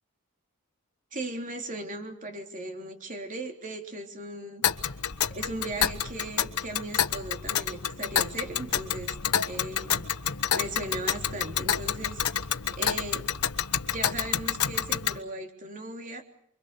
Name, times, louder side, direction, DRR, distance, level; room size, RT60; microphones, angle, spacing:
voice 1, 1.1-4.7 5.3-9.2 9.5-10.1 10.5-13.2 13.9-16.2, right 1 dB, 35° right, 4 dB, 3.4 m, -37 dB
Tick, 4.6-15.2, left 9 dB, 85° left, 1.2 m, -29 dB
29.0 x 24.0 x 6.8 m, 0.68 s
head